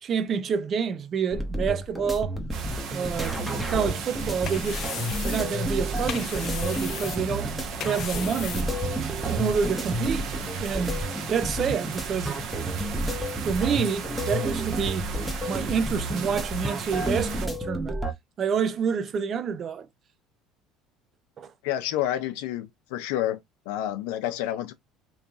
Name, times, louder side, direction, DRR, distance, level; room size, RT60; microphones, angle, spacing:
voice 1, 0.0-2.4 2.9-3.4 3.7-4.8 5.2-7.5 7.8-8.7 9.2-10.3 10.6-11.0 11.3-12.4 13.4-15.1 15.5-18.0 18.4-19.9 21.4-21.5, right 6 dB, 35° right, 0.5 m, -28 dB
sound 1, 1.3-18.1, right 1 dB, 5° right, 0.9 m, -31 dB
sound 2, 2.5-17.5, right 7 dB, 50° right, 1.0 m, -36 dB
sound 3, 4.1-9.2, left 10 dB, 45° left, 0.4 m, -38 dB
voice 2, 21.6-23.4 23.7-24.7, left 12 dB, 90° left, 0.7 m, -29 dB
3.2 x 2.7 x 3.4 m
cardioid pair, 140°, 0 cm